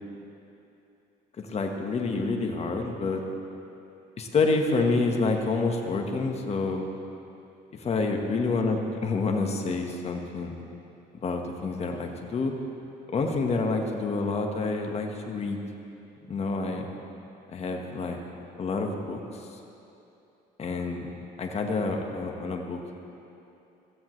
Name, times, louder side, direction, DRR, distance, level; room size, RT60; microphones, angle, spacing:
voice 1, 1.4-3.2 4.2-6.9 7.7-10.5 11.2-12.5 13.1-15.6 16.3-16.9 17.5-18.2 18.6-19.2 20.6-21.1 21.4-22.8, left 3 dB, 40° left, 3 dB, 1.4 m, -28 dB
15.5 x 14.0 x 3.2 m, 2.8 s
cardioid pair, 110°, 17 cm